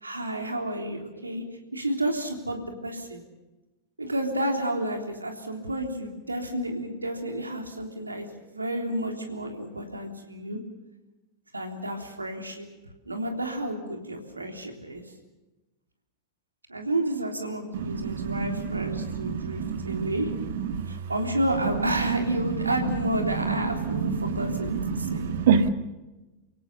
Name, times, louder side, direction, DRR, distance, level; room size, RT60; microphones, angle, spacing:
voice 1, 0.0-1.4 1.7-3.2 4.0-10.6 11.5-12.7 13.0-15.0 16.7-20.3 20.9-25.3, right 1 dB, 80° right, 3 dB, 3.5 m, -31 dB
voice 2, 17.7-20.8 22.7-25.7, right 6 dB, 55° right, 9 dB, 1.8 m, -28 dB
29.5 x 17.5 x 6.8 m, 1.1 s
figure-of-eight pair, 90°, 0 cm